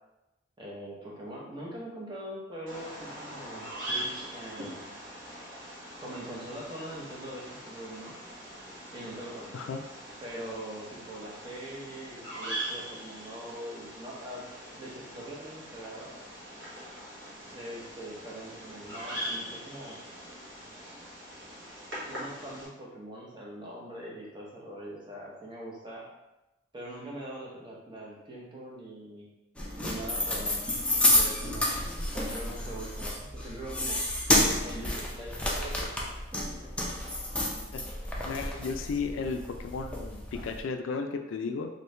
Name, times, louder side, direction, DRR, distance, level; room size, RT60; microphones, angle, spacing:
voice 1, 0.6-4.8 6.0-8.1 8.9-9.6 10.2-14.5 14.7-16.1 17.5-20.0 22.0-26.1 26.7-29.3 29.8-30.6 31.0-34.0 34.6-36.8, right 1 dB, 25° right, -4 dB, 0.7 m, -42 dB
Bird vocalization bird call bird song, 2.7-22.7, right 1 dB, 70° right, 1.1 m, -42 dB
sound 1, 29.6-40.6, left 1 dB, 5° left, 0.4 m, -30 dB
voice 2, 38.2-41.7, left 4 dB, 80° left, 6 dB, 0.3 m, -34 dB
3.0 x 2.6 x 3.2 m, 0.99 s
head